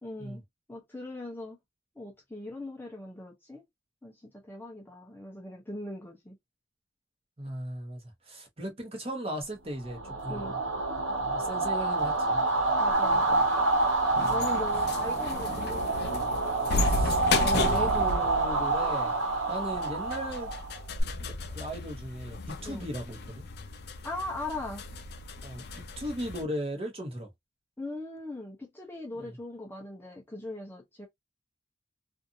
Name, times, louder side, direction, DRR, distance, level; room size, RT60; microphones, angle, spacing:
voice 1, 0.0-0.4 0.7-1.6 2.0-3.6 4.0-6.4 10.3-10.5 12.8-13.5 14.3-16.3 22.6-22.9 24.0-24.8 27.8-31.1, left 2 dB, 10° left, 0.6 m, -40 dB
voice 2, 7.4-8.0 8.3-10.5 11.3-12.4 14.2-14.4 16.7-19.1 19.5-20.5 21.2-23.5 25.4-27.3 29.2-29.4, right 1 dB, 30° right, 1.0 m, -37 dB
sound 1, 9.9-21.0, right 2 dB, 70° right, 1.2 m, -27 dB
sound 2, 12.9-26.4, left 3 dB, 50° left, 0.5 m, -35 dB
2.6 x 2.5 x 2.6 m
head